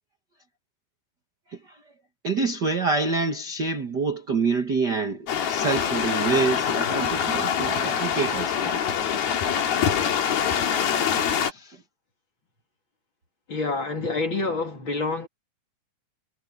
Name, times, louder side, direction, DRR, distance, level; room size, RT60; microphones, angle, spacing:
voice 1, 2.2-8.8 11.2-11.8, right 4 dB, 40° right, 1.5 m, -27 dB
sound 1, 5.3-11.5, left 8 dB, 80° left, 4.4 m, -24 dB
voice 2, 13.5-15.3, left 3 dB, 35° left, 3.1 m, -27 dB
omnidirectional pair, 4.3 m